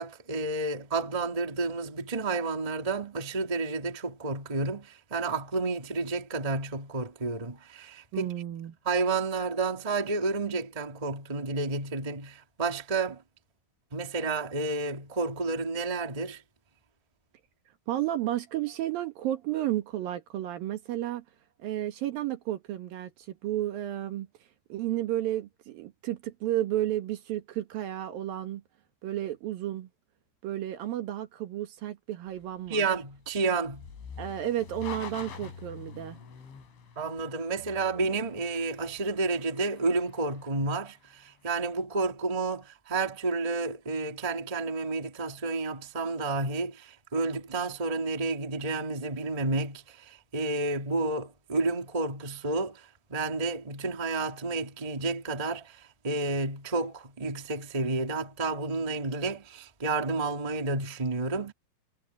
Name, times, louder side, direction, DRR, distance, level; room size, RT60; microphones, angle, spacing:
voice 1, 0.0-8.3 8.8-13.2 13.9-16.4 32.7-33.9 36.9-61.5, right 3 dB, 90° right, 0.3 m, -31 dB
voice 2, 8.1-8.8 17.9-21.2 21.6-24.3 24.7-28.6 29.0-29.9 30.4-32.8 34.2-36.2, right 13 dB, 60° right, 2.8 m, -32 dB
sound 1, 32.3-41.6, left 7 dB, 90° left, 8.0 m, -46 dB
omnidirectional pair, 5.3 m